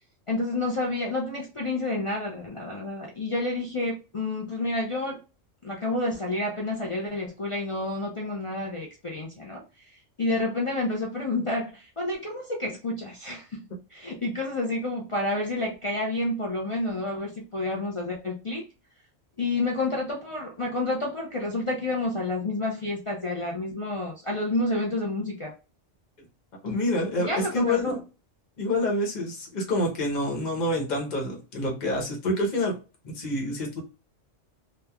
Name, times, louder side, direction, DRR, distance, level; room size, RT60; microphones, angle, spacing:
voice 1, 0.3-5.2 5.6-9.9 10.2-18.7 19.4-25.5 27.2-28.0, left 2 dB, 60° left, -1 dB, 0.3 m, -29 dB
voice 2, 26.6-28.0 28.6-32.7 33.0-33.8, left 1 dB, 40° left, 0 dB, 0.9 m, -27 dB
2.9 x 2.2 x 2.3 m, 0.31 s
omnidirectional pair, 1.3 m